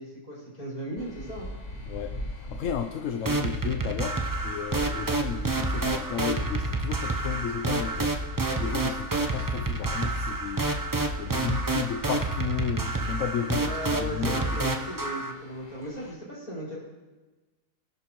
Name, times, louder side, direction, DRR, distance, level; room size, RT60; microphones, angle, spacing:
voice 1, 0.0-1.5 13.6-16.8, equal, 25° left, -7 dB, 5.5 m, -37 dB
sound 1, 1.0-16.1, left 1 dB, 45° left, 2.8 m, -42 dB
voice 2, 1.9-8.2 8.6-10.7 11.2-13.7 14.0-14.6, left 8 dB, 65° left, 6 dB, 0.9 m, -33 dB
sound 2, 3.2-15.3, right 2 dB, 30° right, 0.3 m, -29 dB
23.0 x 11.0 x 3.1 m, 1.2 s
omnidirectional pair, 1.7 m